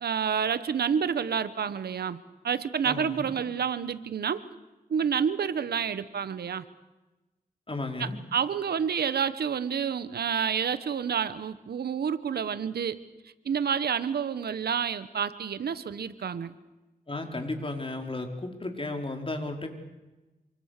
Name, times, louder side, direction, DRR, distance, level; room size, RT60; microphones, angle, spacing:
voice 1, 0.0-4.4 4.9-6.6 8.0-13.0 13.4-16.5, right 7 dB, 90° right, 14 dB, 1.2 m, -29 dB
voice 2, 2.8-3.3 7.7-8.2 17.1-19.7, left 2 dB, 35° left, 4 dB, 4.7 m, -34 dB
27.0 x 26.0 x 6.8 m, 1.1 s
cardioid pair, 55°, 16 cm